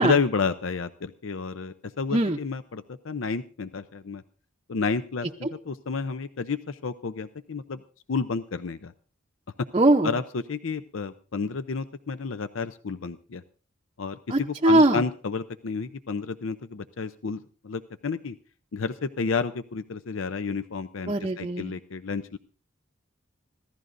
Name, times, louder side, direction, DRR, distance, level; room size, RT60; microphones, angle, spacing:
voice 1, 0.0-4.2 4.7-7.8 8.1-8.9 10.0-13.4 14.0-18.4 18.7-22.4, left 5 dB, 80° left, 12 dB, 0.6 m, -31 dB
voice 2, 9.7-10.1 14.3-15.0 21.1-21.7, right 2 dB, 30° right, 2 dB, 0.6 m, -21 dB
26.0 x 15.5 x 2.6 m, 0.39 s
head